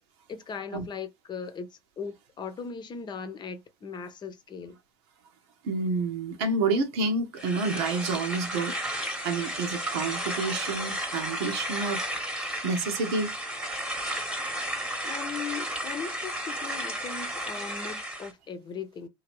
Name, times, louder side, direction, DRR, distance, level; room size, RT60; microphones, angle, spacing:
voice 1, 0.3-4.8 15.0-19.1, left 6 dB, 30° left, 0.8 m, -38 dB
voice 2, 5.6-8.7 9.2-13.4, right 3 dB, 75° right, 1.1 m, -29 dB
sound 1, 7.4-18.3, right 1 dB, 5° right, 1.2 m, -33 dB
2.9 x 2.8 x 3.0 m
hypercardioid pair, 85°, 14 cm